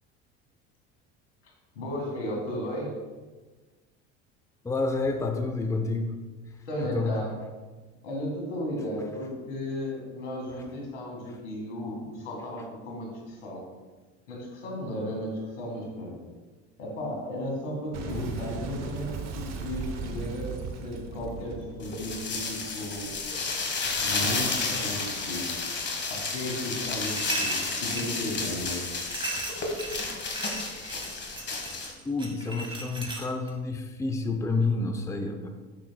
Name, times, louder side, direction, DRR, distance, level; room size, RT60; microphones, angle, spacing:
voice 1, 1.8-3.0 6.7-7.3 8.0-13.6 14.3-16.2 16.8-23.2 24.0-25.6 26.1-28.9, left 1 dB, 85° left, -1 dB, 1.8 m, -34 dB
voice 2, 4.6-6.1 6.8-7.1 18.1-18.3 32.0-35.5, left 3 dB, 10° left, 5 dB, 0.6 m, -29 dB
Boom, 17.9-23.1, right 5 dB, 50° right, 0.9 m, -37 dB
sound 1, 21.8-31.9, left 4 dB, 30° left, 1.3 m, -31 dB
sound 2, 27.0-28.2 29.1-33.5, right 2 dB, 15° right, 1.4 m, -37 dB
7.2 x 5.9 x 2.2 m, 1.3 s
hypercardioid pair, 75°, 35 cm